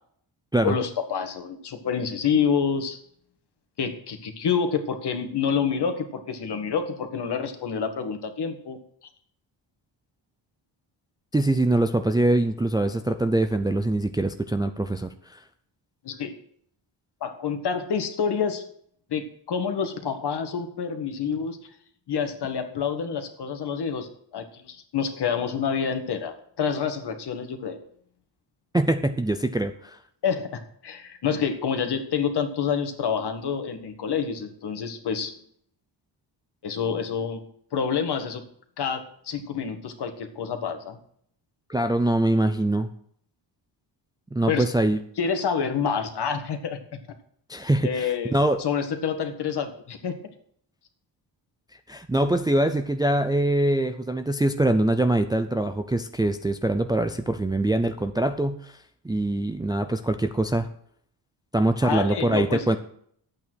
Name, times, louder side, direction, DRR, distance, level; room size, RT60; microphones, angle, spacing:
voice 1, 0.6-3.0 3.8-8.8 16.0-16.4 17.2-18.6 19.1-21.6 22.1-27.8 30.2-35.3 36.6-37.4 37.7-38.4 38.8-41.0 44.5-44.6 45.2-46.8 47.8-50.2 61.8-62.8, left 6 dB, 60° left, 7 dB, 1.7 m, -28 dB
voice 2, 11.3-15.4 28.7-30.0 41.7-42.9 44.3-45.0 47.5-48.6 51.9-58.8 59.0-60.7 61.5-62.8, right 1 dB, 10° right, 8 dB, 0.4 m, -23 dB
11.5 x 8.6 x 6.2 m, 0.65 s
wide cardioid pair, 155°, 46 cm